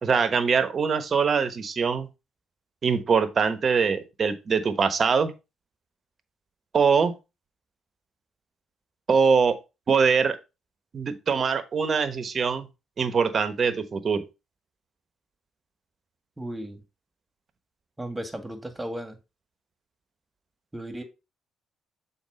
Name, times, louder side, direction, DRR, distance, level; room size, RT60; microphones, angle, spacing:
voice 1, 0.0-2.1 2.8-5.3 6.7-7.1 9.1-9.6 9.9-10.4 10.9-12.7 13.0-14.2, right 5 dB, 50° right, 1.1 m, -23 dB
voice 2, 16.4-16.8 18.0-19.2 20.7-21.0, right 1 dB, 15° right, 2.0 m, -35 dB
7.3 x 4.4 x 4.1 m
hypercardioid pair, 50°, 0 cm